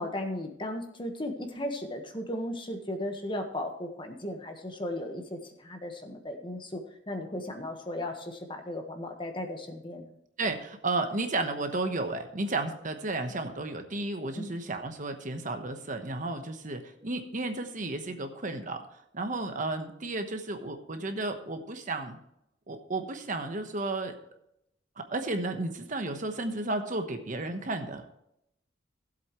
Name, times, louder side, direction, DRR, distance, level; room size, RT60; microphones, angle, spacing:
voice 1, 0.0-10.1 14.3-14.5, left 1 dB, 25° left, 4 dB, 1.4 m, -36 dB
voice 2, 10.4-18.8 19.1-22.2 22.7-24.1 25.0-28.0, right 2 dB, 45° right, 6 dB, 1.1 m, -33 dB
16.5 x 7.8 x 3.1 m, 0.78 s
head